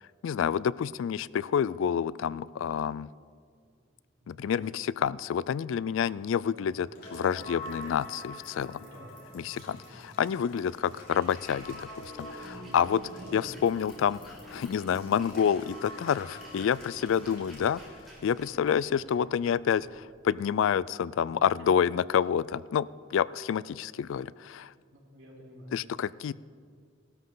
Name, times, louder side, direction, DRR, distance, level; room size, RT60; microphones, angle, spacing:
voice 1, 0.2-3.1 4.3-8.8 9.3-9.8 10.0-17.8 18.2-24.7 25.7-26.3, left 8 dB, 70° left, 20 dB, 0.3 m, -28 dB
voice 2, 4.2-4.7 8.7-9.8 13.1-13.5 21.3-21.4 24.9-26.1, equal, 65° right, -4 dB, 4.2 m, -51 dB
sound 1, 6.5-19.8, equal, 30° right, 4.0 m, -57 dB
sound 2, 6.9-18.8, left 1 dB, 50° left, 3.7 m, -46 dB
Splash splatter, 10.9-20.7, right 1 dB, ahead, 4.3 m, -55 dB
18.0 x 13.0 x 3.9 m, 2.1 s
head